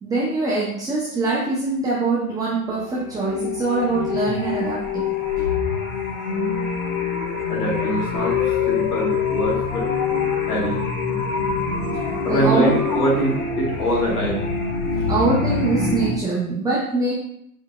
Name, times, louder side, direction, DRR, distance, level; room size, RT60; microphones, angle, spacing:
voice 1, 0.0-5.1 5.4-5.5 12.3-12.7 15.1-17.1, right 3 dB, 10° right, -6 dB, 0.5 m, -23 dB
sound 1, 2.8-16.1, left 5 dB, 55° left, 1.4 m, -25 dB
voice 2, 7.5-9.9 10.5-10.8 12.2-14.5 14.9-15.1, right 1 dB, 80° left, -3 dB, 1.6 m, -24 dB
4.8 x 4.4 x 2.3 m, 0.74 s
figure-of-eight pair, 95°, 45 cm